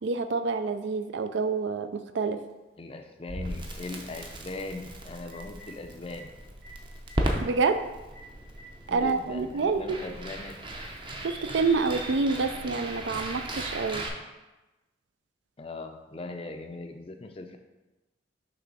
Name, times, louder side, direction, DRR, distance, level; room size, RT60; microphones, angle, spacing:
voice 1, 0.0-2.4 7.4-7.8 8.9-10.0 11.2-14.0, right 4 dB, 70° right, 10 dB, 0.4 m, -27 dB
Telephone, 2.5-2.6 4.7-4.8 5.2-5.7 6.1-6.2 6.6-6.7 7.0-7.2 7.7-7.8 8.1-8.2 8.5-9.1 10.1-10.2 11.7-11.8, equal, 55° right, 1.6 m, -50 dB
voice 2, 2.8-6.3 8.9-10.6 15.6-17.6, left 2 dB, 30° left, 6 dB, 0.4 m, -39 dB
Crackle, 3.3-14.1, right 1 dB, 25° right, 0.6 m, -36 dB
6.0 x 3.3 x 5.3 m, 1.1 s
head